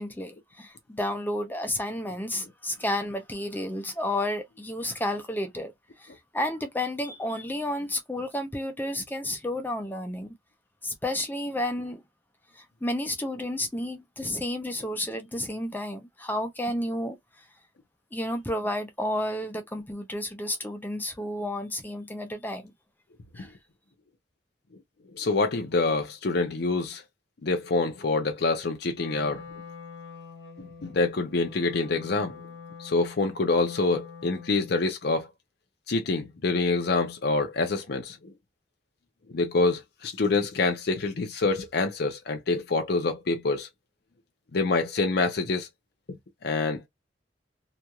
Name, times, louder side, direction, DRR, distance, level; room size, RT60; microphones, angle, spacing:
voice 1, 0.0-5.7 6.0-10.4 10.8-12.0 12.6-17.2 18.1-22.7 23.4-23.5, left 1 dB, 10° left, 0.5 m, -31 dB
voice 2, 25.1-27.0 27.4-29.4 30.6-32.4 32.8-35.3 35.9-38.3 39.3-43.7 44.5-45.7 46.4-46.8, left 3 dB, 60° left, 0.6 m, -26 dB
Wind instrument woodwind instrument, 28.9-34.9, left 6 dB, 85° left, 1.3 m, -45 dB
2.9 x 2.4 x 2.3 m
head